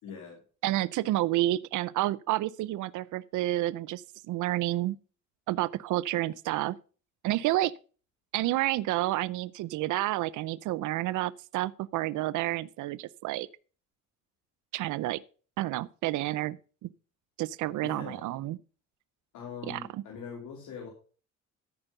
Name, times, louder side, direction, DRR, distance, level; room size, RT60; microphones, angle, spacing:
voice 1, 0.0-0.4 17.8-18.2 19.3-20.9, left 6 dB, 80° left, 2.9 m, -42 dB
voice 2, 0.6-5.0 5.5-6.8 7.2-7.7 8.3-13.5 14.7-15.2 15.6-16.9 17.4-18.6 19.7-20.0, right 16 dB, 80° right, 0.5 m, -30 dB
13.5 x 5.2 x 5.5 m
cardioid pair, 90°, 30 cm